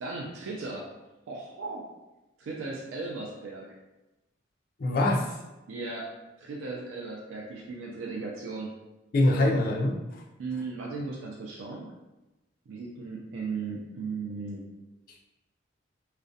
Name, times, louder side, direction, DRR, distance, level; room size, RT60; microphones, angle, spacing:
voice 1, 0.0-0.9 1.3-1.8 2.4-3.7 5.7-6.1 6.4-8.7 10.4-11.9 12.7-14.6, right 3 dB, 85° right, -2 dB, 0.3 m, -36 dB
voice 2, 4.8-5.3 9.1-10.0, left 1 dB, 45° left, -1 dB, 0.4 m, -23 dB
2.4 x 2.1 x 2.6 m, 1.0 s
head